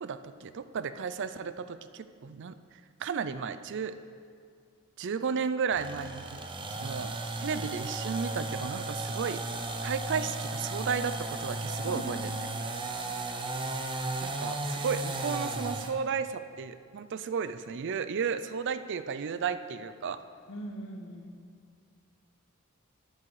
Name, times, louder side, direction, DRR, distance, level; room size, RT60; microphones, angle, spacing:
voice 1, 0.0-2.6 3.0-3.9 5.0-6.4 6.7-9.4 9.8-12.2 14.2-20.2, right 6 dB, 55° right, 12 dB, 0.4 m, -33 dB
sound 1, 5.7-16.0, right 2 dB, 20° right, 0.7 m, -35 dB
voice 2, 11.8-12.6 20.5-21.3, equal, 60° left, 3 dB, 1.3 m, -40 dB
12.5 x 8.6 x 4.8 m, 2.2 s
head